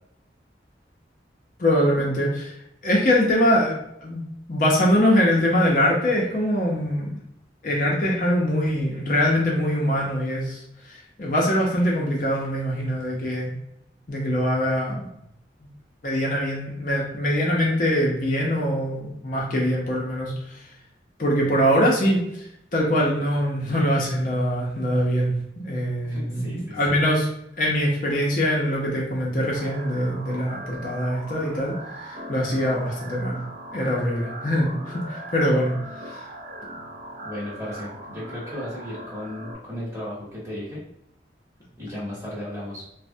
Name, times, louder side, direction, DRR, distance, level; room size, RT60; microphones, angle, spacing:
voice 1, 1.6-2.6 2.8-4.2 4.5-7.1 7.6-13.5 14.1-15.1 15.6-15.7 16.0-20.6 21.2-22.5 22.7-27.3 27.6-33.4 33.7-35.7 36.1-36.2, equal, 45° left, -3 dB, 0.5 m, -23 dB
voice 2, 26.0-27.0 37.2-40.8 41.8-42.8, left 1 dB, 15° right, -6 dB, 1.0 m, -35 dB
sound 1, 29.5-39.5, right 1 dB, 50° right, 0.4 m, -39 dB
3.2 x 2.0 x 2.6 m, 0.78 s
head